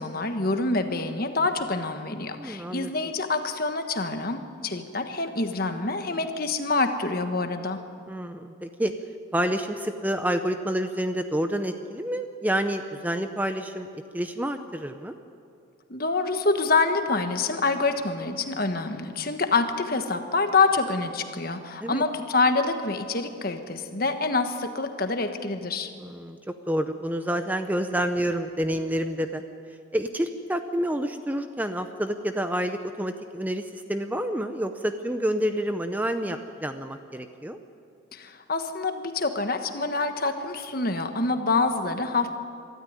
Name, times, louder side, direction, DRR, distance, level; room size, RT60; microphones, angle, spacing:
voice 1, 0.0-7.8 15.9-25.9 38.1-42.3, left 3 dB, 45° left, 7 dB, 1.4 m, -26 dB
voice 2, 2.4-2.9 8.1-8.9 9.3-13.9 14.1-15.2 21.8-22.0 26.0-29.4 29.9-37.6, equal, 10° right, 8 dB, 0.6 m, -28 dB
23.5 x 13.0 x 9.7 m, 2.4 s
head